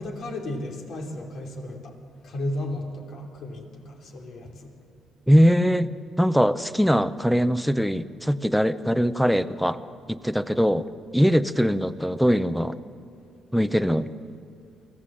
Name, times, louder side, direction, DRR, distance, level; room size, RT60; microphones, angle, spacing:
voice 1, 0.0-2.0 2.2-4.7, left 1 dB, 70° left, 1 dB, 3.3 m, -34 dB
voice 2, 5.3-5.9 6.2-9.8 10.1-10.9 11.1-12.8 13.5-14.1, equal, ahead, 13 dB, 0.7 m, -21 dB
24.0 x 16.5 x 7.6 m, 2.4 s
cardioid pair, 90°, 0 cm